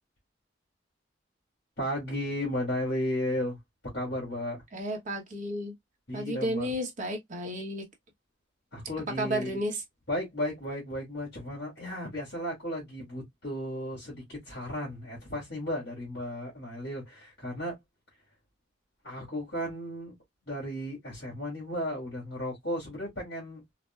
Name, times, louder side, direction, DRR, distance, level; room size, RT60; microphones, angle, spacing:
voice 1, 1.8-3.6 3.9-4.6 6.1-6.7 8.7-9.6 10.1-17.8 19.0-20.2 20.5-23.6, left 1 dB, 65° left, 2.2 m, -34 dB
voice 2, 4.7-5.7 6.1-7.8 9.2-9.8, equal, 45° right, 1.0 m, -32 dB
4.0 x 2.2 x 2.3 m
head